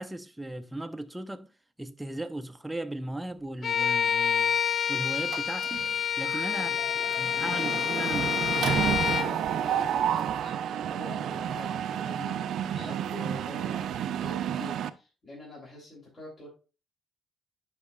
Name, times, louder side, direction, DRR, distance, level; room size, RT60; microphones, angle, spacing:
voice 1, 0.0-1.5 1.8-4.6 4.9-5.9 6.2-6.8 7.2-8.9, right 1 dB, 10° right, 0.6 m, -37 dB
Bowed string instrument, 3.6-9.3, left 8 dB, 50° left, 0.5 m, -28 dB
Mechanisms, 5.3-5.9 6.3-6.5 6.7-14.9, right 9 dB, 75° right, 0.4 m, -30 dB
voice 2, 6.4-8.8 9.1-16.5, left 2 dB, 35° left, 3.3 m, -45 dB
11.0 x 4.9 x 2.4 m
cardioid pair, 90°, 0 cm